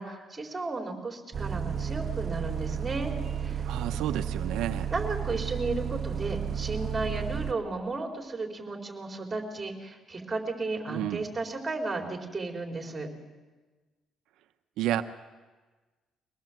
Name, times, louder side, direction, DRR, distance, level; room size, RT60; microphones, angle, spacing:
voice 1, 0.0-3.7 4.9-13.1, right 3 dB, 20° right, 2 dB, 4.3 m, -34 dB
Bus, 1.3-7.5, right 7 dB, 40° right, 1.2 m, -32 dB
voice 2, 3.7-4.9 10.9-11.2 14.8-15.0, right 12 dB, 85° right, 8 dB, 0.9 m, -31 dB
23.5 x 19.0 x 7.6 m, 1.3 s
cardioid pair, 115°, 0 cm